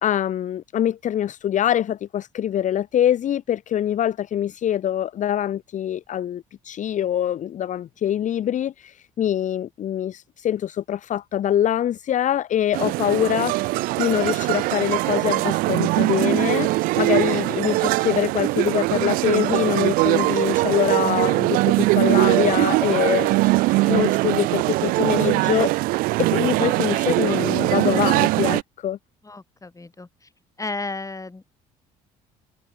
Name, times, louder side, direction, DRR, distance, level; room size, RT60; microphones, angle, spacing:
voice 1, 0.0-25.7 26.2-29.0, left 10 dB, 40° left, 1.0 m, -24 dB
sound 1, 12.7-28.6, right 21 dB, 50° right, 0.4 m, -21 dB
voice 2, 29.2-30.3 30.6-31.5, left 3 dB, 15° left, 5.2 m, -34 dB
figure-of-eight pair, 50°, 19 cm